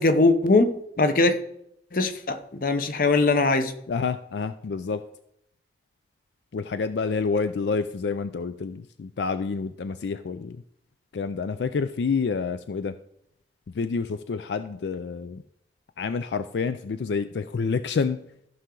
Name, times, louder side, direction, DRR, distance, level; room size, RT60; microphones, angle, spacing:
voice 1, 0.0-1.4 1.9-3.7, left 3 dB, 50° left, 0.8 m, -21 dB
voice 2, 3.9-5.0 6.5-10.6 11.1-12.9 13.7-15.4 16.0-18.2, left 5 dB, 75° left, 0.4 m, -28 dB
14.5 x 5.8 x 3.8 m
head